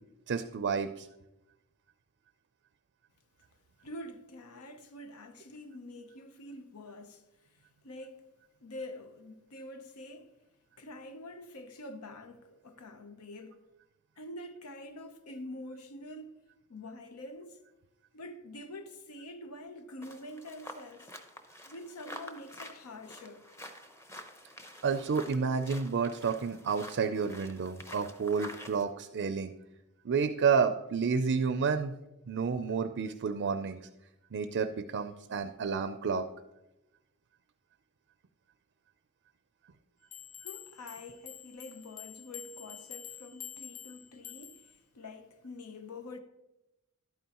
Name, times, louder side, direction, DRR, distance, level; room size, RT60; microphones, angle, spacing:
voice 1, 0.3-1.1 24.8-29.5 30.0-31.9 32.3-33.8 34.3-36.3, right 5 dB, 55° right, 0.4 m, -30 dB
voice 2, 3.8-8.3 8.6-10.3 10.8-13.6 14.2-16.4 16.7-17.6 18.1-21.1 21.7-23.5 40.4-46.2, left 1 dB, 85° left, 0.8 m, -46 dB
sound 1, 20.0-28.8, equal, 15° left, 0.8 m, -48 dB
sound 2, 40.1-44.8, left 10 dB, 40° left, 0.5 m, -47 dB
11.5 x 9.1 x 2.9 m
head